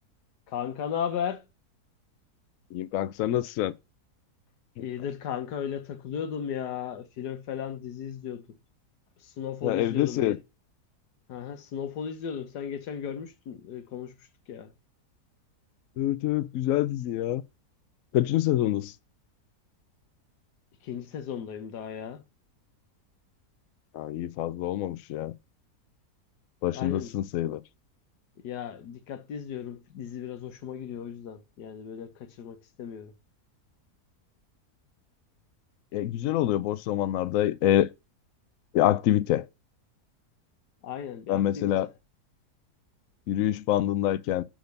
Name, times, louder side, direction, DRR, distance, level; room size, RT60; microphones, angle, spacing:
voice 1, 0.5-1.4 4.8-8.6 9.2-10.4 11.3-14.7 20.8-22.2 26.7-27.2 28.4-33.2 40.8-42.0, left 8 dB, 90° left, 1.6 m, -36 dB
voice 2, 2.7-3.7 9.6-10.3 16.0-17.4 18.1-18.9 24.0-25.3 26.6-27.6 35.9-37.9 38.7-39.4 41.3-41.9 43.3-44.4, left 13 dB, 70° left, 0.8 m, -26 dB
6.4 x 5.1 x 5.1 m
omnidirectional pair, 1.7 m